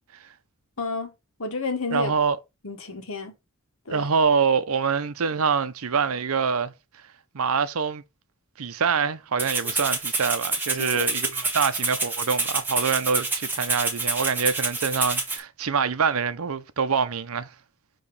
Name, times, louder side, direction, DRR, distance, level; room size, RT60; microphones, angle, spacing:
voice 1, 0.8-1.1 1.4-2.1 2.6-3.3 3.8-4.1 9.6-9.7 10.8-11.1, left 3 dB, 70° left, 1.4 m, -31 dB
voice 2, 1.9-2.4 3.9-6.7 7.3-8.0 8.6-17.5, right 5 dB, 80° right, 0.7 m, -25 dB
Rattle (instrument), 9.4-15.4, right 3 dB, 10° right, 1.2 m, -27 dB
6.8 x 3.1 x 5.4 m
head